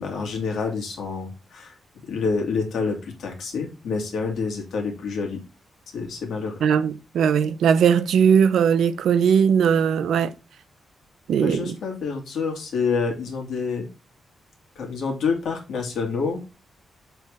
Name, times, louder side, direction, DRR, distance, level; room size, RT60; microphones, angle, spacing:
voice 1, 0.0-1.7 2.0-5.4 5.9-6.6 11.4-13.9 14.8-16.4, left 4 dB, 70° left, 2.2 m, -27 dB
voice 2, 6.6-10.3 11.3-11.7, right 7 dB, 80° right, 0.6 m, -19 dB
6.9 x 3.5 x 4.7 m
wide cardioid pair, 150°, 0 cm